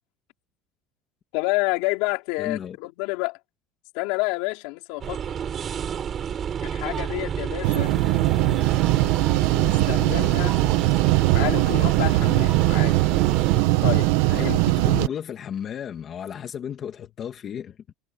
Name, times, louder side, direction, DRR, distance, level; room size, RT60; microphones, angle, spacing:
voice 1, 1.3-3.4 3.9-5.2 6.6-7.9 9.5-10.6 11.3-13.0 13.8-14.1 14.4-14.6, left 24 dB, 70° left, 4.5 m, -29 dB
voice 2, 2.4-2.8 14.3-17.9, left 8 dB, 30° left, 2.1 m, -33 dB
sound 1, 5.0-13.6, right 8 dB, 25° right, 3.9 m, -29 dB
sound 2, 7.6-15.1, right 20 dB, 75° right, 1.0 m, -21 dB
cardioid pair, 170°, 0 cm